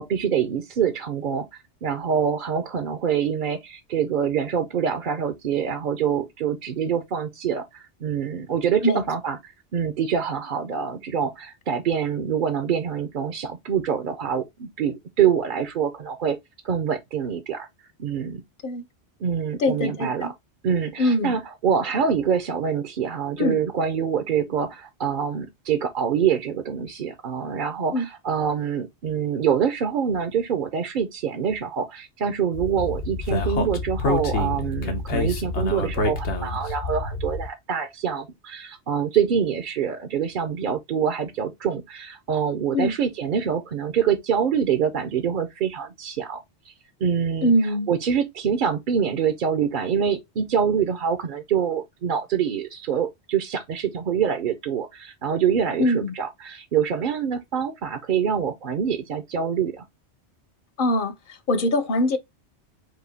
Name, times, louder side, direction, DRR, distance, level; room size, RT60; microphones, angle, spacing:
voice 1, 0.0-1.5 1.8-9.4 9.7-16.4 16.6-17.7 18.0-18.4 19.2-20.3 20.6-46.7 47.0-47.5 47.9-59.8, right 7 dB, 55° right, 0.7 m, -25 dB
voice 2, 19.6-20.3 21.0-21.4 23.4-23.6 27.9-28.1 42.7-42.9 47.4-47.9 55.8-56.1 60.8-62.2, left 1 dB, 55° left, 0.8 m, -22 dB
Speech, 32.5-37.5, left 2 dB, 75° left, 1.2 m, -27 dB
4.8 x 2.6 x 3.8 m
omnidirectional pair, 1.2 m